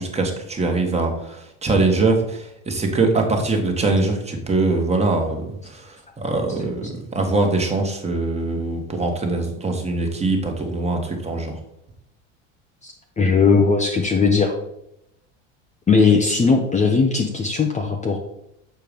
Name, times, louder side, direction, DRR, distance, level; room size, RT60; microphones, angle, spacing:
voice 1, 0.0-11.6, right 3 dB, 15° right, 3 dB, 1.5 m, -22 dB
voice 2, 12.8-14.5 15.9-18.2, left 4 dB, 20° left, 2 dB, 0.8 m, -18 dB
6.9 x 4.5 x 5.2 m, 0.81 s
supercardioid pair, 115°, 37 cm